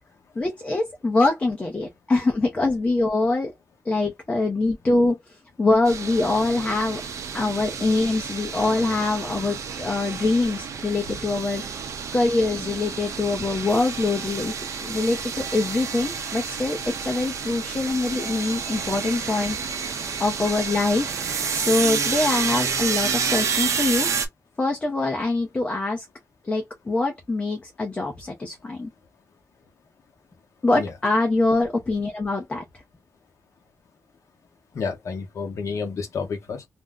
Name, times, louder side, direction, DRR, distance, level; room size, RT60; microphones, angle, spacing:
voice 1, 0.4-3.5 3.9-5.2 5.6-7.0 7.3-11.6 12.1-14.5 14.8-19.6 20.2-21.1 21.5-24.1 24.6-26.1 26.5-28.9 30.6-32.6, left 2 dB, 20° left, 0.6 m, -24 dB
sound 1, 5.9-24.3, right 6 dB, 55° right, 0.6 m, -29 dB
voice 2, 34.7-36.7, left 5 dB, 55° left, 0.8 m, -30 dB
2.5 x 2.1 x 3.5 m
wide cardioid pair, 180°, 6 cm